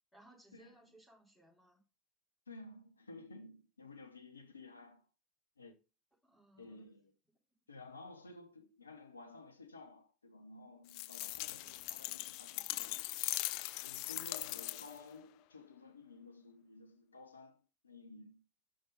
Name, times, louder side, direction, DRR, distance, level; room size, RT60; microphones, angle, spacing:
voice 1, 0.1-1.8 6.2-6.9, right 1 dB, 10° left, 3.6 m, -63 dB
voice 2, 2.5-5.0 5.6-5.7 6.6-7.1 7.7-13.0 13.8-18.4, left 3 dB, 90° left, 0.7 m, -54 dB
sound 1, 10.9-15.1, left 18 dB, 60° left, 0.3 m, -40 dB
5.7 x 5.0 x 5.3 m
hypercardioid pair, 75°, 0 cm